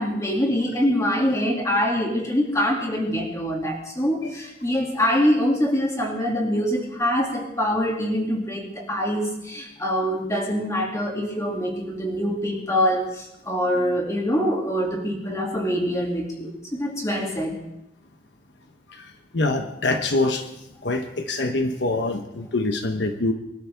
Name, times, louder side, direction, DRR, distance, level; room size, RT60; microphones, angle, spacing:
voice 1, 0.0-17.6, equal, 15° left, 0 dB, 2.5 m, -24 dB
voice 2, 18.9-20.5 20.8-23.3, left 2 dB, 70° left, 6 dB, 1.1 m, -25 dB
23.5 x 12.5 x 3.5 m, 0.84 s
head